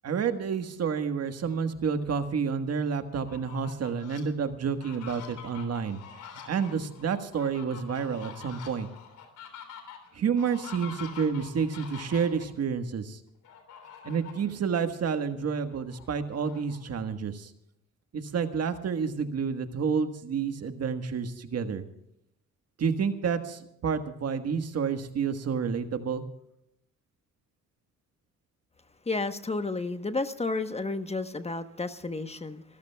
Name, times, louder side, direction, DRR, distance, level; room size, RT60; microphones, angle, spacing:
voice 1, 0.0-6.0 6.5-8.9 10.1-13.2 14.0-17.5 18.1-21.8 22.8-26.2, right 6 dB, 55° right, 8 dB, 1.5 m, -29 dB
Fowl, 3.1-4.2 4.7-12.5 13.4-14.5 14.9-15.0 15.4-17.1, left 8 dB, 80° left, 3.4 m, -46 dB
voice 2, 29.1-32.6, left 3 dB, 20° left, 9 dB, 1.1 m, -31 dB
29.5 x 14.5 x 2.3 m, 0.78 s
cardioid pair, 90°, 30 cm